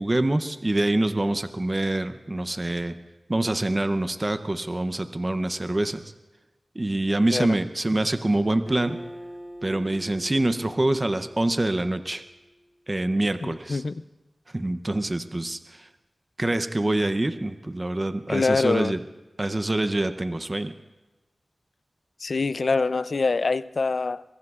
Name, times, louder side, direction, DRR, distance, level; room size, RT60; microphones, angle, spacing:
voice 1, 0.0-2.9 3.3-6.0 6.8-9.0 9.6-12.2 12.9-13.8 14.5-15.9 16.4-19.0 19.4-20.7, right 1 dB, 35° right, 0.7 m, -25 dB
Acoustic guitar, 8.7-12.2, equal, 15° left, 5.4 m, -43 dB
voice 2, 13.4-14.0 18.3-19.0 22.2-24.2, left 4 dB, 70° left, 0.4 m, -24 dB
25.0 x 23.5 x 2.5 m
wide cardioid pair, 60°, 0 cm